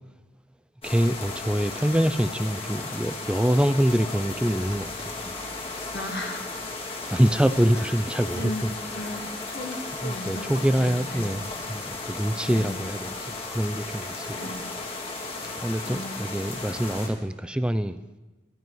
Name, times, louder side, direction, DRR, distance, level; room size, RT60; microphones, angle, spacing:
sound 1, 0.8-17.1, left 3 dB, 30° left, 1.8 m, -35 dB
voice 1, 0.8-5.3 7.1-8.7 10.0-14.4 15.6-18.0, equal, 5° right, 0.3 m, -25 dB
voice 2, 5.9-6.6 7.7-7.9 8.3-8.7 8.9-11.3 12.5-12.8 14.3-14.7 15.9-16.2, left 1 dB, 70° left, 1.7 m, -36 dB
12.0 x 10.5 x 4.6 m
head